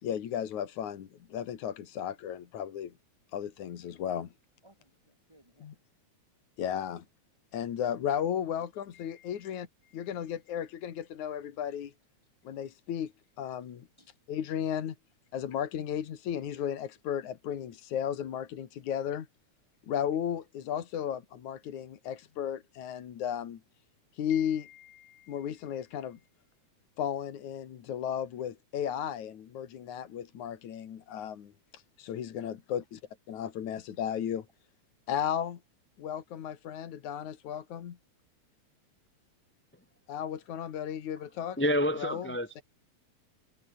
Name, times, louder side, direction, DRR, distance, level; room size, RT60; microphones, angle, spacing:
voice 1, 0.0-2.9 3.3-4.3 5.6-5.7 6.6-7.0 7.5-9.7 9.9-11.9 12.4-13.1 13.4-13.9 14.3-14.9 15.3-19.3 19.9-23.6 24.1-26.2 27.0-32.8 33.3-34.5 35.1-35.6 36.0-38.0 40.1-41.6 42.0-42.3 42.6-42.7, left 9 dB, 80° left, 3.3 m, -34 dB
voice 2, 4.6-5.7 8.6-8.7 9.2-9.5 12.2-12.8 14.0-14.2, right 1 dB, 10° right, 7.3 m, -65 dB
voice 3, 41.6-42.6, equal, 5° left, 0.8 m, -28 dB
omnidirectional pair, 3.4 m